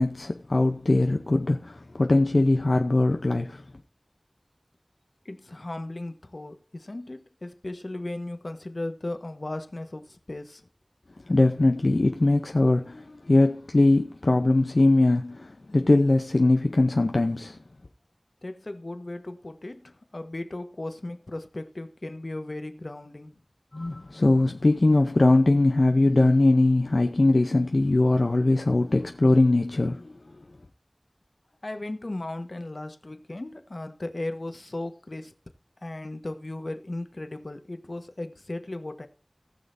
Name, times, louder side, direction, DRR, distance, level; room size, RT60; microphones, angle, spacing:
voice 1, 0.0-3.6 11.3-17.6 23.7-30.1, left 2 dB, 85° left, 0.7 m, -21 dB
voice 2, 5.2-10.7 18.4-23.3 31.6-35.3 35.8-39.1, left 2 dB, 70° left, 1.3 m, -36 dB
18.5 x 6.4 x 2.6 m
wide cardioid pair, 45°, 0 cm